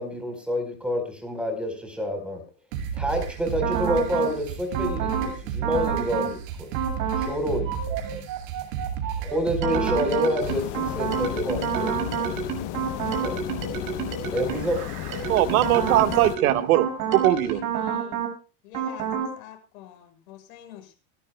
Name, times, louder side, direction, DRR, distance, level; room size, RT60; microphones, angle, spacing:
voice 1, 0.0-2.4 3.0-6.7 7.2-7.7 9.2-12.0 13.2-13.4 14.3-14.8, equal, ahead, 4.5 m, -28 dB
sound 1, 2.7-10.7, right 8 dB, 65° right, 4.7 m, -32 dB
sound 2, 3.6-4.3 4.7-5.3 5.6-6.3 6.7-7.3 7.6-14.7 15.1-18.3 18.7-19.3, right 7 dB, 50° right, 6.4 m, -29 dB
sound 3, 10.4-16.4, left 14 dB, 45° left, 1.1 m, -34 dB
voice 2, 15.3-17.6, right 14 dB, 85° right, 1.7 m, -21 dB
voice 3, 17.4-18.2 18.6-20.9, left 10 dB, 80° left, 7.1 m, -46 dB
29.5 x 12.5 x 2.3 m
supercardioid pair, 145°, 42 cm